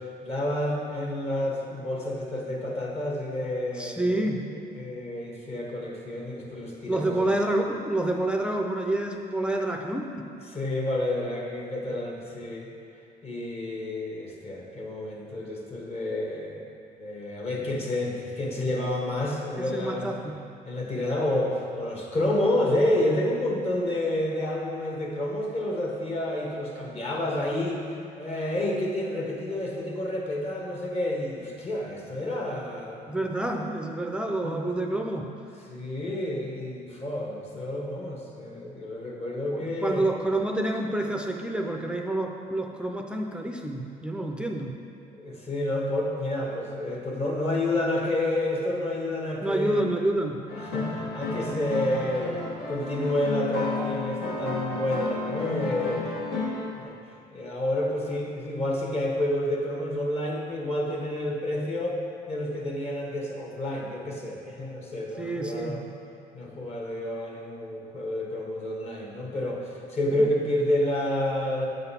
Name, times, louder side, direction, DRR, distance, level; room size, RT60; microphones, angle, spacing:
voice 1, 0.2-7.3 10.5-12.7 13.2-16.6 17.0-20.1 20.6-27.9 28.2-33.2 34.4-34.6 35.7-40.0 45.1-49.9 50.6-56.0 56.7-57.0 57.3-62.0 62.3-65.8 66.3-71.7, left 1 dB, 35° left, -2 dB, 1.3 m, -29 dB
voice 2, 3.8-4.4 6.9-10.3 19.6-20.4 33.1-35.3 39.5-44.7 49.4-50.4 65.2-65.8 70.1-70.3, right 1 dB, 5° right, 2 dB, 0.5 m, -28 dB
sound 1, 50.5-56.8, left 3 dB, 75° left, 1.4 m, -32 dB
7.9 x 3.9 x 5.6 m, 2.5 s
cardioid pair, 110°, 17 cm